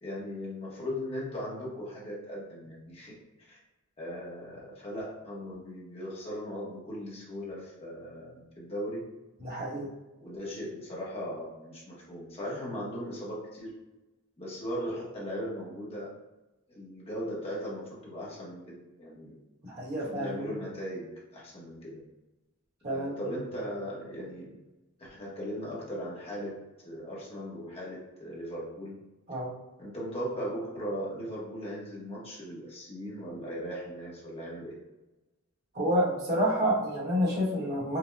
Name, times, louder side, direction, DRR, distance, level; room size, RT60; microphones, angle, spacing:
voice 1, 0.0-3.1 3.4-3.6 4.0-9.1 10.2-13.7 14.4-16.1 16.7-19.3 19.9-22.0 22.9-24.5 25.0-26.6 26.8-29.0 29.8-34.7, equal, 30° left, -5 dB, 0.9 m, -38 dB
voice 2, 9.4-9.9 19.6-20.5 22.8-23.2 29.3-29.5 35.7-38.0, equal, 50° right, -6 dB, 1.2 m, -29 dB
4.8 x 2.1 x 2.3 m, 1.0 s
head